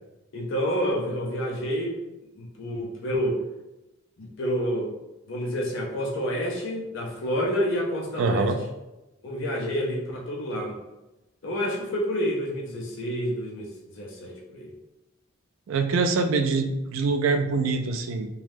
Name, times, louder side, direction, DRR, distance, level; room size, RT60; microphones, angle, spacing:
voice 1, 0.3-2.0 2.4-3.4 4.2-4.9 5.3-8.5 9.2-10.8 11.4-14.7, equal, 60° left, -2 dB, 0.5 m, -29 dB
voice 2, 8.2-8.6 15.7-18.3, right 4 dB, 70° right, 5 dB, 0.3 m, -24 dB
2.6 x 2.2 x 3.3 m, 0.99 s
head